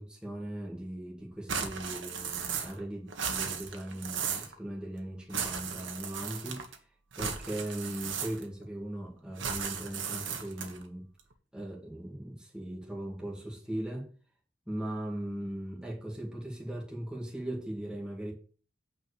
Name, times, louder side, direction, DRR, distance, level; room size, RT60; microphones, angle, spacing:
voice 1, 0.0-6.6 7.2-11.1 11.5-14.1 14.7-18.3, right 1 dB, 5° right, 2.1 m, -39 dB
sound 1, 1.5-2.8 3.1-4.5 5.3-6.8 7.1-8.6 9.4-10.8, right 6 dB, 80° right, 1.6 m, -36 dB
9.0 x 4.9 x 6.8 m
head